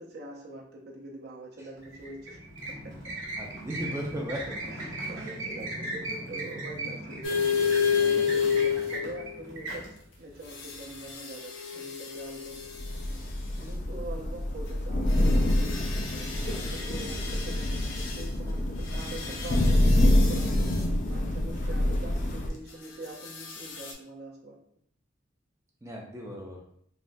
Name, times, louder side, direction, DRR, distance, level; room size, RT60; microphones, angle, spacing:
voice 1, 0.0-2.4 2.7-3.0 4.7-7.6 8.0-12.7 13.6-15.8 16.4-20.5 21.0-24.6, right 2 dB, 55° right, -1 dB, 0.6 m, -44 dB
sound 1, 1.8-11.1, right 2 dB, 85° right, 0.8 m, -38 dB
voice 2, 3.4-4.4 5.2-5.5 25.8-26.6, equal, 15° right, -2 dB, 0.4 m, -36 dB
sound 2, 7.2-9.4 10.5-12.9 15.1-18.2 18.9-20.8 23.2-23.9, left 6 dB, 85° left, 0.6 m, -31 dB
Thunder / Rain, 12.8-22.5, left 1 dB, 40° left, 0.4 m, -26 dB
3.3 x 2.2 x 2.5 m, 0.66 s
head